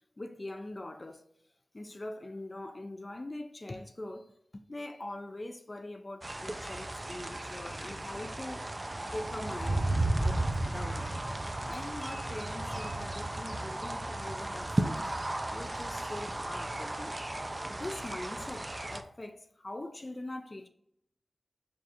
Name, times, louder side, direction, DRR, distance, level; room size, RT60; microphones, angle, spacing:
voice 1, 0.2-1.2 1.7-8.7 9.0-9.9 10.2-11.1 11.7-15.1 15.5-17.2 17.7-20.7, left 1 dB, 40° left, 0.3 m, -42 dB
sound 1, 6.2-19.0, right 1 dB, 30° right, 0.4 m, -34 dB
4.6 x 2.4 x 2.8 m
cardioid pair, 55°, 0 cm